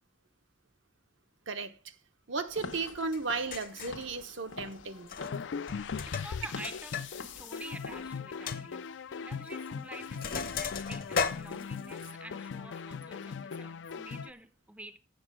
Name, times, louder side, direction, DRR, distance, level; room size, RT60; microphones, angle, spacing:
voice 1, 1.5-1.9 2.3-5.1, right 4 dB, 75° right, 0.9 m, -35 dB
Walk footsteps / Siren, 2.5-8.1, left 4 dB, 85° left, 1.2 m, -47 dB
Sink (filling or washing), 3.1-3.2 3.5-4.0 5.0-5.4 5.7-7.1 7.4-7.5 7.9-8.0 8.5-8.6 9.5-9.7 9.9-12.1, left 5 dB, 45° left, 0.8 m, -35 dB
sound 1, 5.2-14.3, left 6 dB, 70° left, 0.4 m, -39 dB
voice 2, 5.8-15.0, right 2 dB, 5° right, 0.4 m, -48 dB
8.0 x 7.5 x 6.0 m
head